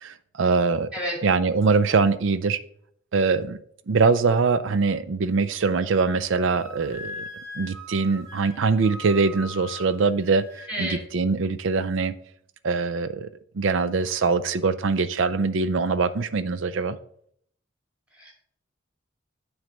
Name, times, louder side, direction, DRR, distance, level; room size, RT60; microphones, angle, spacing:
voice 1, 0.0-0.9 1.2-2.6 3.1-3.6 3.9-7.2 7.6-10.4 10.8-12.1 12.6-13.3 13.5-17.0, right 4 dB, 70° right, 14 dB, 0.5 m, -23 dB
Wind instrument woodwind instrument, 6.4-10.7, left 1 dB, 55° right, 2.5 m, -40 dB
voice 2, 10.7-11.0 18.2-18.3, equal, 5° right, -3 dB, 2.3 m, -30 dB
9.3 x 3.2 x 5.1 m, 0.66 s
head